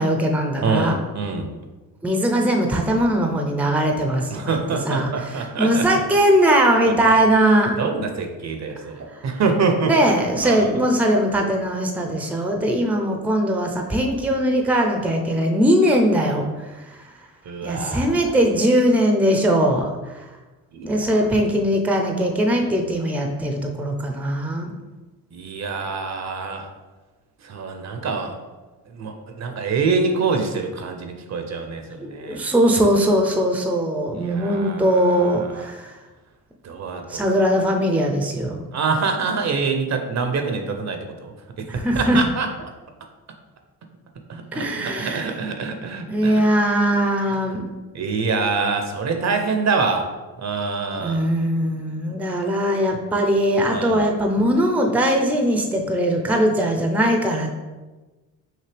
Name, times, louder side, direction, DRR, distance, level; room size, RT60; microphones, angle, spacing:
voice 1, 0.0-1.0 2.0-4.5 4.8-7.7 9.9-16.4 16.9-17.0 17.6-20.2 20.8-24.7 32.0-35.9 37.1-38.6 41.7-42.2 44.5-45.3 46.1-47.7 51.0-57.5, equal, 5° right, 3 dB, 0.6 m, -20 dB
voice 2, 0.6-1.5 4.3-6.0 6.9-7.1 7.8-9.9 10.4-10.8 17.4-18.1 20.7-21.3 25.3-26.7 27.4-28.4 28.9-32.4 34.1-35.7 36.6-37.5 38.7-41.3 41.9-42.5 44.3-46.4 47.9-50.1 50.4-51.2 53.7-54.0, right 4 dB, 45° right, 5 dB, 0.7 m, -25 dB
5.8 x 2.7 x 3.3 m, 1.2 s
cardioid pair, 85°, 38 cm